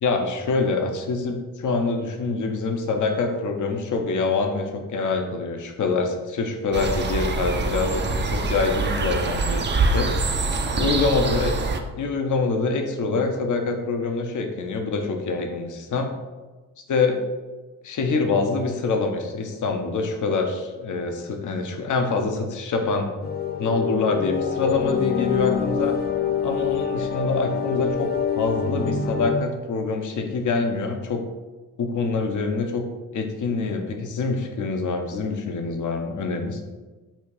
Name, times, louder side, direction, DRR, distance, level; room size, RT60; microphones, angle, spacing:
voice 1, 0.0-8.0 8.3-10.1 10.8-11.6 12.0-16.1 16.9-17.2 17.8-23.1 23.6-26.0 26.4-31.2 31.8-32.8 33.1-36.6, left 4 dB, 55° left, 4 dB, 0.9 m, -25 dB
sound 1, 6.7-11.8, right 3 dB, 30° right, 0.6 m, -24 dB
sound 2, 23.2-29.3, left 7 dB, 25° left, 0.5 m, -26 dB
4.2 x 2.5 x 4.8 m, 1.2 s
supercardioid pair, 55°, 36 cm